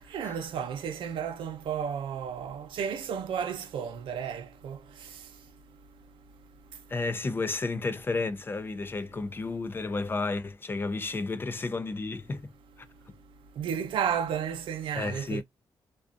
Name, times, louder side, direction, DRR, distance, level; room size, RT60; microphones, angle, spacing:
voice 1, 0.1-4.8 13.6-15.4, right 8 dB, 80° right, 0.7 m, -32 dB
voice 2, 6.9-12.5 15.0-15.4, left 3 dB, 25° left, 0.3 m, -32 dB
2.5 x 2.4 x 2.4 m
cardioid pair, 100°, 9 cm